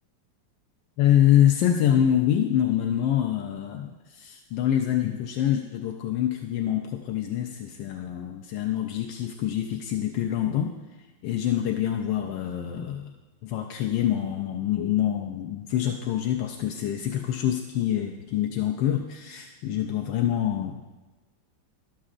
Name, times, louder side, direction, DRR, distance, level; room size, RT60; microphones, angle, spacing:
voice 1, 1.0-10.8 11.2-13.1 13.4-21.0, left 11 dB, 80° left, 2 dB, 1.3 m, -25 dB
12.5 x 7.3 x 2.5 m, 1.2 s
omnidirectional pair, 2.0 m